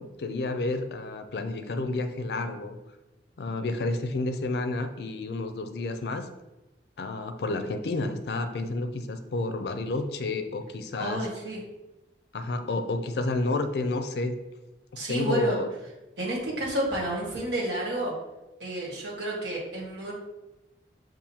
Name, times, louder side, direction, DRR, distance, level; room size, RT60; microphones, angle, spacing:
voice 1, 0.0-2.8 3.4-6.3 7.0-11.3 12.3-14.3 14.9-15.7, left 2 dB, 70° left, 8 dB, 0.4 m, -30 dB
voice 2, 11.0-11.6 14.9-15.6 16.2-18.1 18.6-20.1, right 1 dB, 85° right, -4 dB, 1.5 m, -30 dB
7.0 x 2.5 x 2.8 m, 1.0 s
head